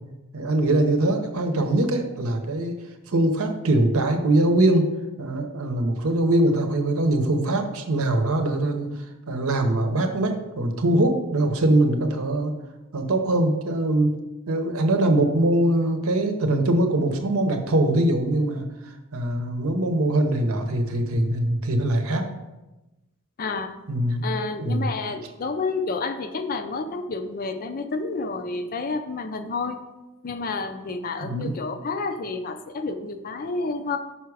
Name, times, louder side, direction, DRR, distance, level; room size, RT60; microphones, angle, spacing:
voice 1, 0.3-2.8 3.1-4.9 5.2-8.9 9.3-12.5 12.9-14.2 14.5-22.2 23.9-24.2 24.6-24.9 31.2-31.5, right 1 dB, 70° right, 5 dB, 0.8 m, -22 dB
voice 2, 23.4-23.7 24.2-29.8 30.2-34.0, left 3 dB, 40° left, 8 dB, 0.5 m, -30 dB
5.8 x 4.7 x 4.7 m, 1.0 s
head